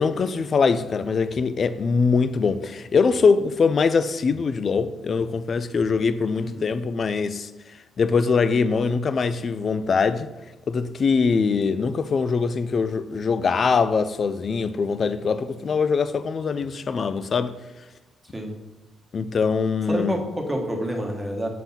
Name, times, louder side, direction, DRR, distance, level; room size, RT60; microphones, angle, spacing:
voice 1, 0.0-7.5 8.0-10.3 10.7-17.5 19.1-20.2, left 5 dB, 45° left, 0.4 m, -22 dB
voice 2, 19.9-21.5, equal, 10° right, 1.5 m, -28 dB
7.2 x 3.8 x 5.7 m
cardioid pair, 90°, 0 cm